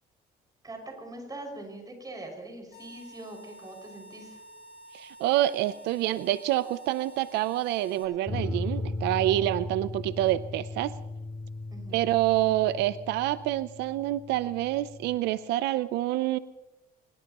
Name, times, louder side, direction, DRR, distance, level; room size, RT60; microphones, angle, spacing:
voice 1, 0.6-4.4 11.7-12.1, right 2 dB, 20° right, 3 dB, 5.9 m, -42 dB
sound 1, 2.7-8.0, right 1 dB, 75° left, 7.2 m, -50 dB
voice 2, 4.9-10.9 11.9-16.4, right 14 dB, 90° right, 15 dB, 0.6 m, -27 dB
sound 2, 8.3-15.2, left 2 dB, 20° left, 5.4 m, -37 dB
23.5 x 20.5 x 3.0 m, 1.0 s
cardioid pair, 110°, 17 cm